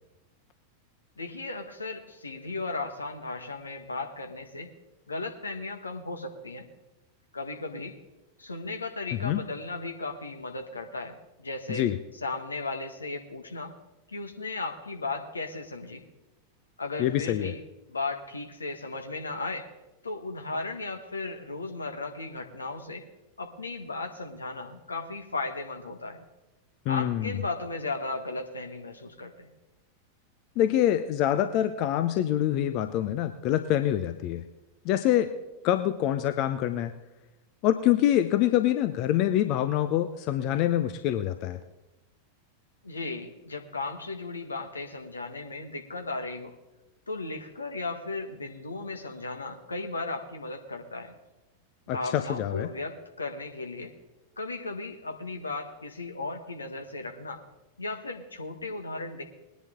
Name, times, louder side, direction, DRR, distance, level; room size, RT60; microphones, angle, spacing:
voice 1, 1.2-4.7 5.1-6.6 7.3-7.9 8.4-11.9 12.2-13.7 14.1-16.0 16.8-17.6 17.9-19.6 20.0-23.0 23.4-26.2 26.9-29.5 42.8-46.5 47.1-51.1 51.9-53.9 54.4-57.4 57.8-59.2, left 3 dB, 80° left, 5 dB, 1.4 m, -36 dB
voice 2, 17.0-17.5 26.9-27.3 30.6-34.4 34.8-35.3 35.6-36.9 37.6-41.6 51.9-52.7, left 12 dB, 40° left, 10 dB, 0.7 m, -25 dB
20.0 x 10.5 x 3.7 m, 1.0 s
figure-of-eight pair, 90°, 0 cm